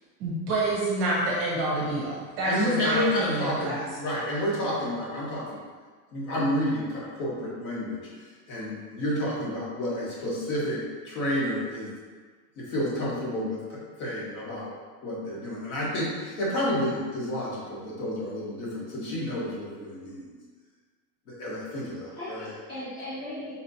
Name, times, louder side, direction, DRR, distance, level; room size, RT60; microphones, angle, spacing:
voice 1, 0.2-3.9, right 2 dB, 30° right, -5 dB, 0.7 m, -28 dB
voice 2, 2.4-5.6 6.1-8.1 8.5-11.9 12.6-14.7 15.0-20.3 21.3-22.5, left 1 dB, 55° left, -5 dB, 1.3 m, -30 dB
voice 3, 21.6-23.5, left 1 dB, 20° left, -11 dB, 0.6 m, -39 dB
4.2 x 2.9 x 2.6 m, 1.5 s
supercardioid pair, 165°, 49 cm